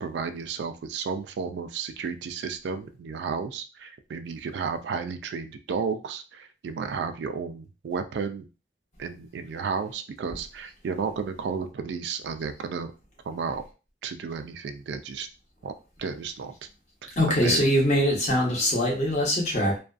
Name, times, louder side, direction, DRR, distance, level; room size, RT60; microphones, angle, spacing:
voice 1, 0.0-8.5 9.0-12.9 13.3-13.6 14.0-15.3 15.6-15.7 16.0-16.5 17.0-17.7, right 5 dB, 80° right, 8 dB, 0.3 m, -32 dB
voice 2, 17.2-19.8, equal, 40° left, -3 dB, 0.9 m, -23 dB
2.5 x 2.2 x 2.4 m, 0.32 s
head